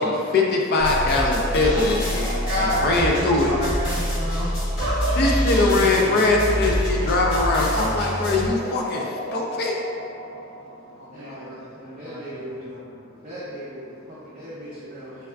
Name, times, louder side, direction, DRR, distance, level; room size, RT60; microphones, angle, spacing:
voice 1, 0.0-2.2 2.6-3.5 5.2-9.0 9.3-9.7, left 2 dB, 50° left, -1 dB, 0.3 m, -21 dB
sound 1, 0.8-10.9, equal, 70° left, 1.4 m, -27 dB
voice 2, 2.5-5.6 10.9-11.6 12.0-12.9, equal, 80° right, -8 dB, 0.6 m, -29 dB
voice 3, 11.1-12.7 13.2-15.3, equal, 35° right, -11 dB, 0.5 m, -38 dB
3.4 x 2.3 x 2.2 m, 2.3 s
head